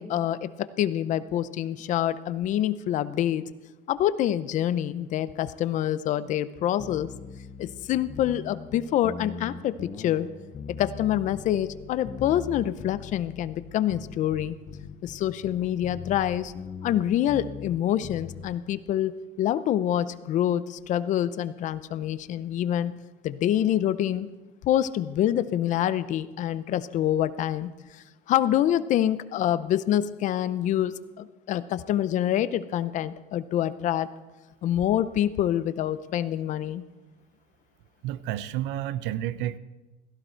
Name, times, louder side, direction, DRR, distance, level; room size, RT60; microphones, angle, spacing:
voice 1, 0.0-3.4 3.9-7.1 7.6-10.3 10.8-14.6 15.0-16.5 16.8-22.9 23.2-24.3 24.6-27.7 28.3-34.1 34.6-36.8, left 11 dB, 45° left, 15 dB, 0.5 m, -26 dB
sound 1, 6.8-18.6, left 6 dB, 25° left, 0.9 m, -41 dB
voice 2, 38.0-39.6, right 12 dB, 85° right, 15 dB, 0.7 m, -30 dB
16.5 x 14.5 x 4.5 m, 1.1 s
cardioid pair, 175°, 18 cm